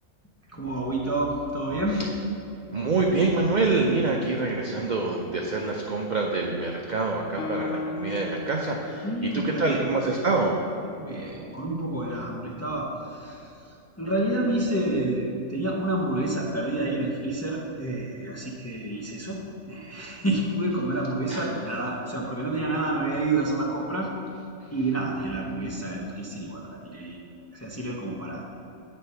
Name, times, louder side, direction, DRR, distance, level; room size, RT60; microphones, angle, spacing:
voice 1, 0.5-2.1 9.0-9.9 11.0-13.5 14.0-19.4 19.7-24.1 24.7-27.2 27.5-28.5, right 2 dB, 15° left, -3 dB, 0.6 m, -29 dB
voice 2, 2.7-10.5 21.3-21.5, right 3 dB, 50° right, 0 dB, 0.5 m, -26 dB
Guitar, 7.4-11.0, left 4 dB, 60° left, 0.6 m, -37 dB
8.3 x 4.3 x 5.6 m, 2.8 s
omnidirectional pair, 1.4 m